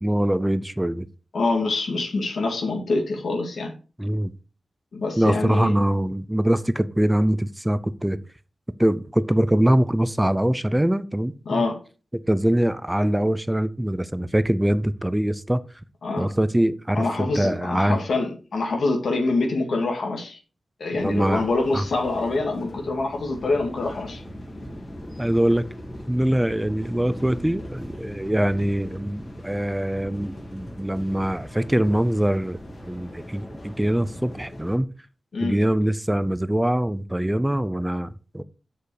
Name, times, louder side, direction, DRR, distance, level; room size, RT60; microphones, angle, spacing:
voice 1, 0.0-1.1 4.0-4.3 5.2-8.2 8.8-11.6 12.3-15.6 16.2-18.0 21.0-21.5 21.7-21.8 25.2-25.7 26.1-32.6 32.9-34.9 35.4-38.4, right 1 dB, 5° right, 0.5 m, -23 dB
voice 2, 1.3-3.7 4.9-5.7 11.5-11.8 16.0-16.3 16.9-20.4 20.8-24.2 35.3-35.6, left 3 dB, 65° left, 2.1 m, -25 dB
sound 1, 21.0-34.8, equal, 30° left, 2.1 m, -39 dB
7.6 x 6.7 x 4.8 m
wide cardioid pair, 140°, 0 cm